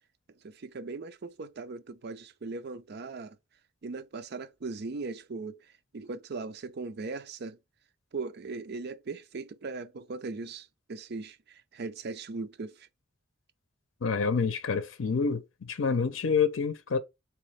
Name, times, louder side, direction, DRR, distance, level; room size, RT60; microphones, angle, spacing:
voice 1, 0.4-3.4 3.8-7.6 8.1-12.9, right 3 dB, 55° right, 0.5 m, -39 dB
voice 2, 14.0-17.0, left 5 dB, 85° left, 0.6 m, -28 dB
4.2 x 3.0 x 3.2 m
head